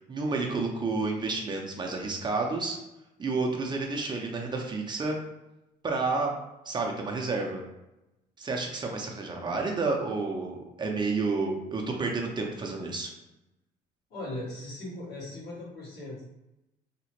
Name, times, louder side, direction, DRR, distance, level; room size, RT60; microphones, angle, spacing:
voice 1, 0.1-2.8 3.2-5.2 5.8-6.3 6.7-7.6 8.4-13.1, right 3 dB, 25° right, 1 dB, 0.5 m, -30 dB
voice 2, 14.1-16.4, left 1 dB, 75° left, -6 dB, 1.3 m, -39 dB
2.8 x 2.0 x 2.9 m, 0.94 s
cardioid pair, 110°, 17 cm